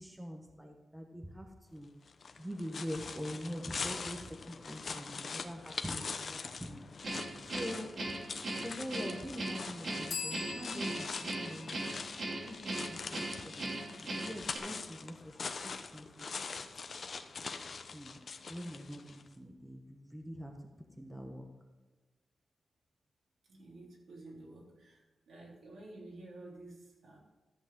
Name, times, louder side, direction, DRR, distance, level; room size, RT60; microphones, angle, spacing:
voice 1, 0.0-1.9 2.4-6.8 7.4-12.0 12.3-13.7 14.0-15.1 15.6-16.3 16.5-16.6 17.9-18.2 18.5-20.5 21.0-21.5, equal, 10° right, 3 dB, 1.1 m, -44 dB
sound 1, 2.1-19.3, left 4 dB, 45° left, 0.7 m, -43 dB
Guitar, 7.0-14.6, right 2 dB, 50° right, 2.5 m, -39 dB
sound 2, 10.1-13.7, left 5 dB, 75° left, 2.1 m, -45 dB
voice 2, 23.5-27.2, right 2 dB, 80° right, -3 dB, 3.5 m, -51 dB
13.5 x 8.2 x 3.7 m, 1.2 s
wide cardioid pair, 165°, 0 cm